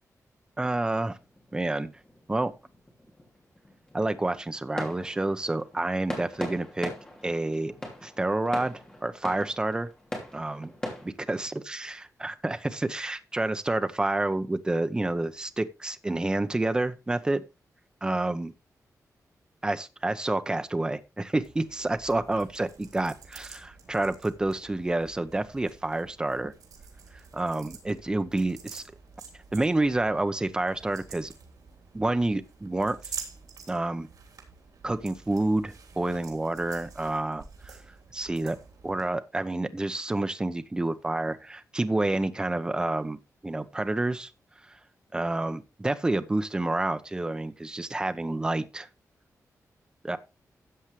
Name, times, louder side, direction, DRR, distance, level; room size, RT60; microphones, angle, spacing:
voice 1, 0.6-1.2 1.5-1.9 2.3-2.5 3.9-6.9 7.2-7.7 8.0-9.9 10.3-10.7 11.0-17.4 18.0-18.5 19.6-26.5 27.3-28.8 29.5-31.3 31.9-33.2 33.7-34.1 34.8-37.8 38.1-38.6 38.8-44.3 44.7-44.8 45.1-48.9 50.0-50.2, right 2 dB, 15° right, 10 dB, 0.7 m, -29 dB
sound 1, 1.1-11.1, left 1 dB, 10° left, 2.9 m, -41 dB
sound 2, 21.4-39.0, right 6 dB, 85° right, 3.3 m, -48 dB
13.5 x 8.1 x 3.2 m, 0.26 s
wide cardioid pair, 180°, 6 cm